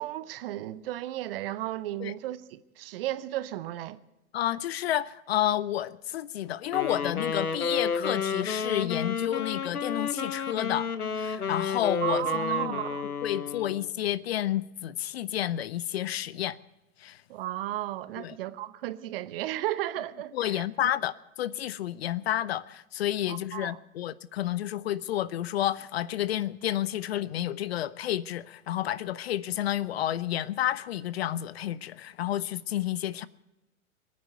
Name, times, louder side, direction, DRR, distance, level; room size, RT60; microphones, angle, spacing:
voice 1, 0.0-4.0 12.0-13.1 17.3-20.6 23.3-23.8, right 14 dB, 40° right, 0.8 m, -34 dB
voice 2, 4.3-10.9 11.1-16.6 17.0-17.2 18.2-18.4 20.3-21.1 21.4-33.3, left 12 dB, 45° left, 0.5 m, -30 dB
Wind instrument woodwind instrument, 6.7-13.9, left 5 dB, 85° left, 1.2 m, -31 dB
21.5 x 9.5 x 6.6 m
figure-of-eight pair, 115°, 43 cm